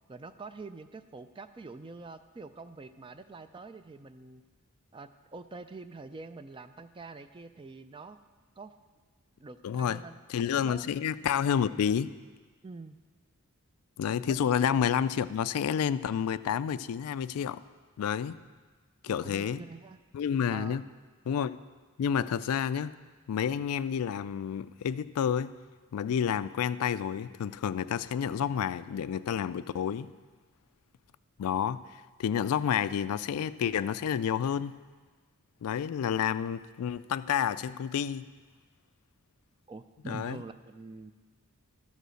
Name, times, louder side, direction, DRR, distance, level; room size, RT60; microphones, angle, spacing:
voice 1, 0.1-4.4 4.9-8.2 8.6-8.7 9.4-10.2 10.5-10.9 12.6-13.0 14.2-14.4 19.1-20.0 20.5-20.8 39.7-41.1, right 3 dB, 20° right, 11 dB, 0.3 m, -45 dB
voice 2, 9.6-10.0 10.3-12.2 14.0-17.6 18.0-18.4 19.0-19.6 20.1-20.8 21.3-21.6 22.0-22.9 23.3-25.6 25.9-30.1 31.4-34.8 35.6-38.2 40.1-40.4, left 8 dB, 75° left, 15 dB, 0.3 m, -30 dB
13.0 x 5.3 x 6.3 m, 1.4 s
head